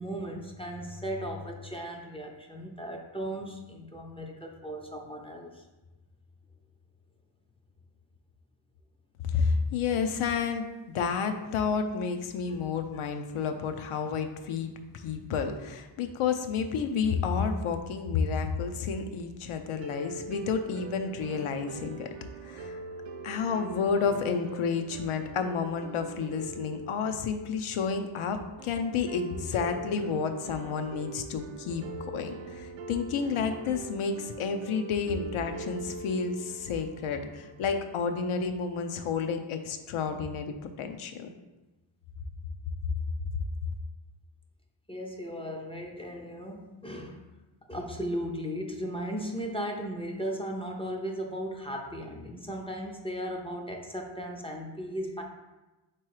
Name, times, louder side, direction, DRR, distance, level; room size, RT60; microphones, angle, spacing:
voice 1, 0.0-5.7 12.5-12.6 44.9-47.2 47.7-55.2, equal, 15° left, 1 dB, 0.4 m, -36 dB
voice 2, 9.2-10.6 10.9-22.1 22.4-22.8 23.2-41.3, left 5 dB, 75° left, 6 dB, 0.6 m, -30 dB
sound 1, 19.8-37.8, right 4 dB, 65° right, 0.5 m, -43 dB
3.7 x 3.0 x 4.7 m, 1.1 s
wide cardioid pair, 120°, 50 cm